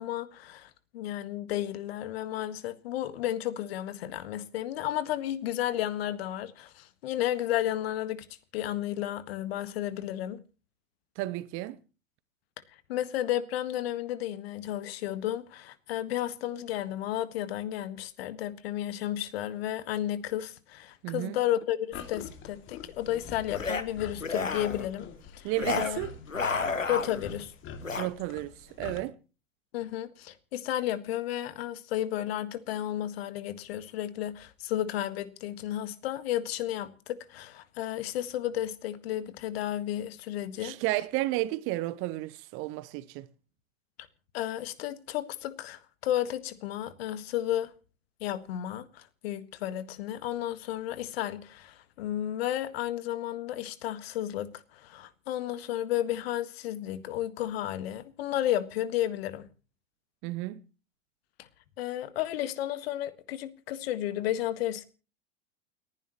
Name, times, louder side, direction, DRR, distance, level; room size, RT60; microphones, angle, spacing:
voice 1, 0.0-8.2 8.5-10.4 12.9-25.1 25.4-26.0 26.9-27.5 29.7-40.8 44.3-47.7 48.2-59.5 61.4-61.5 61.8-64.8, left 12 dB, 50° left, 1.7 m, -33 dB
voice 2, 11.2-11.8 21.0-21.4 25.4-26.1 28.0-28.5 28.8-29.2 40.6-43.3 60.2-60.6, right 17 dB, 35° right, 0.7 m, -32 dB
sound 1, 21.9-29.0, left 6 dB, 30° left, 2.6 m, -45 dB
sound 2, 23.5-23.8 24.2-24.9 25.6-25.9 26.2-27.3 27.8-28.1, left 4 dB, 85° left, 1.2 m, -31 dB
29.5 x 10.5 x 3.1 m
figure-of-eight pair, 90°, 38 cm